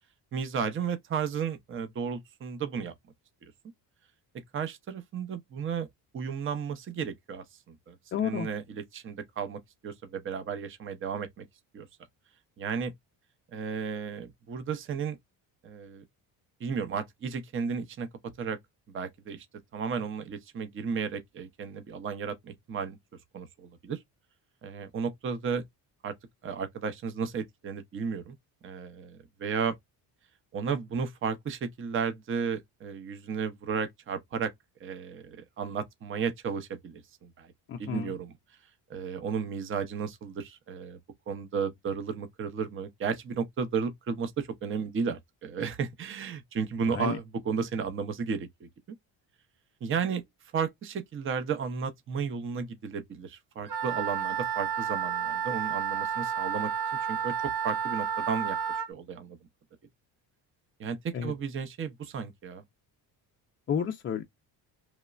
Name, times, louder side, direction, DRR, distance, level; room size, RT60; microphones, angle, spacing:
voice 1, 0.3-2.9 4.5-5.9 6.1-11.4 11.7-11.9 12.6-12.9 13.5-15.2 15.6-16.0 16.6-18.1 18.4-18.6 18.9-19.5 19.7-23.0 23.3-24.0 24.6-25.6 26.0-26.1 26.4-28.4 28.6-29.8 30.5-34.5 34.8-37.5 37.8-38.4 38.9-41.0 41.3-48.5 49.8-50.2 50.5-56.7 57.1-59.4 60.8-62.6, right 6 dB, 30° right, 0.6 m, -33 dB
voice 2, 8.1-8.5 37.7-38.1 46.9-47.2 61.1-61.3 63.7-64.2, left 7 dB, 30° left, 0.4 m, -30 dB
Wind instrument woodwind instrument, 53.7-58.9, right 8 dB, 65° right, 0.9 m, -31 dB
3.1 x 2.1 x 2.3 m
cardioid pair, 125°, 43 cm